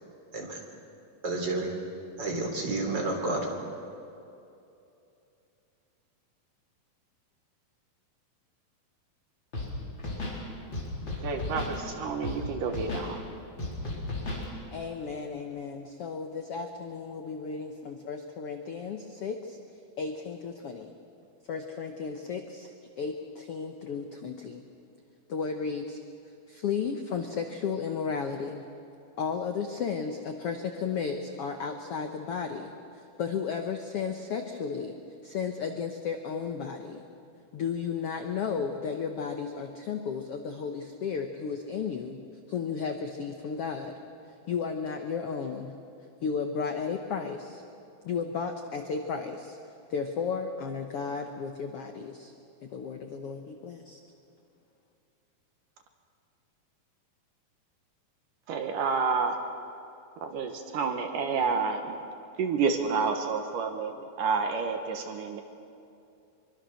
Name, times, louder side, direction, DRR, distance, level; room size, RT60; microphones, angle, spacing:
voice 1, 1.2-1.7 2.2-3.5, right 2 dB, 30° right, 1 dB, 3.6 m, -30 dB
Scratching (performance technique), 9.5-9.7 10.0-10.4 10.7-11.7 12.2-12.4 12.7-13.1 13.6-14.4, left 2 dB, 30° left, 4.9 m, -34 dB
voice 2, 11.2-13.2 58.5-59.4 60.2-62.0 62.4-63.9 64.2-65.4, right 5 dB, 70° right, 5 dB, 2.7 m, -29 dB
voice 3, 14.7-19.6 20.0-20.9 21.5-22.7 23.0-24.6 25.3-26.0 26.5-28.6 29.2-34.9 35.2-37.0 37.5-42.2 42.5-43.9 44.5-45.8 46.2-47.6 48.0-49.6 49.9-52.3 52.6-54.0, left 6 dB, 70° left, 5 dB, 1.4 m, -34 dB
24.5 x 23.5 x 6.5 m, 2.7 s
omnidirectional pair, 4.2 m